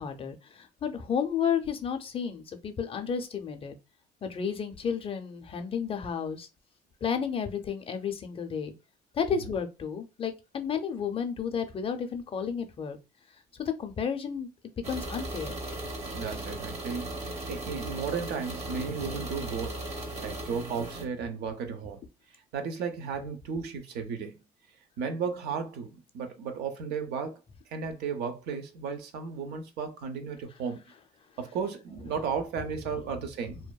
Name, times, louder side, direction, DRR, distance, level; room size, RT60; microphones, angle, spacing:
voice 1, 0.0-3.7 4.2-6.5 7.0-8.7 9.1-13.0 13.5-14.5 14.9-15.6, left 7 dB, 35° left, 0.4 m, -32 dB
sound 1, 14.8-21.1, right 1 dB, 40° right, 0.8 m, -37 dB
voice 2, 16.1-19.8 20.2-22.0 22.5-24.4 25.0-27.4 27.7-30.8 31.4-33.6, right 6 dB, 75° right, 0.6 m, -34 dB
2.7 x 2.2 x 2.3 m
cardioid pair, 110°, 17 cm